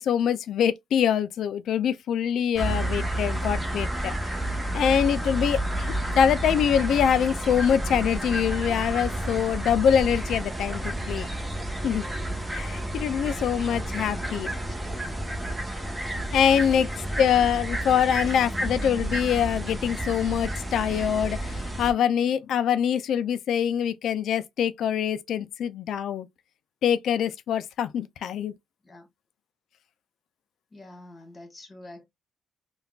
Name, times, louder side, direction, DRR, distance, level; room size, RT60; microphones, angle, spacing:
voice 1, 0.0-4.3 4.7-11.3 11.8-12.1 12.5-14.5 16.3-16.9 17.2-26.3 26.8-28.5, left 8 dB, 70° left, 0.3 m, -24 dB
sound 1, 2.6-21.9, right 1 dB, 10° right, 0.9 m, -30 dB
voice 2, 13.9-15.4 16.4-17.1 28.8-29.1 30.7-32.1, left 2 dB, 30° left, 1.6 m, -48 dB
3.5 x 2.2 x 2.3 m
cardioid pair, 90°, 0 cm